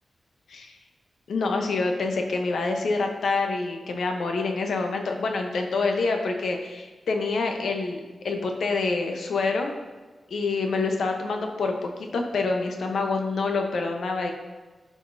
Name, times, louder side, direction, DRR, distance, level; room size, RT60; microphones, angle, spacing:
voice 1, 1.3-8.0 8.2-9.8 10.3-14.3, left 3 dB, 80° left, 3 dB, 0.8 m, -26 dB
11.5 x 5.0 x 2.7 m, 1.3 s
wide cardioid pair, 155°, 0 cm